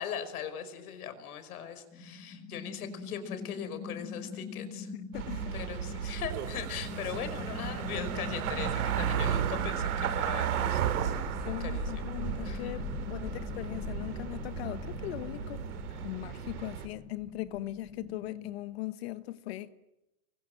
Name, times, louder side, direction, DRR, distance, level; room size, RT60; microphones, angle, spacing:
voice 1, 0.0-4.9 5.5-10.8 11.1-12.1 12.4-12.6, left 8 dB, 80° left, 5.4 m, -40 dB
sound 1, 1.9-18.5, left 4 dB, 10° left, 2.2 m, -42 dB
voice 2, 4.9-5.6 11.1-15.6 16.0-19.7, left 16 dB, 45° left, 1.2 m, -39 dB
sound 2, 5.1-16.9, right 9 dB, 80° right, 3.5 m, -34 dB
29.5 x 23.5 x 7.8 m
supercardioid pair, 175°, 44 cm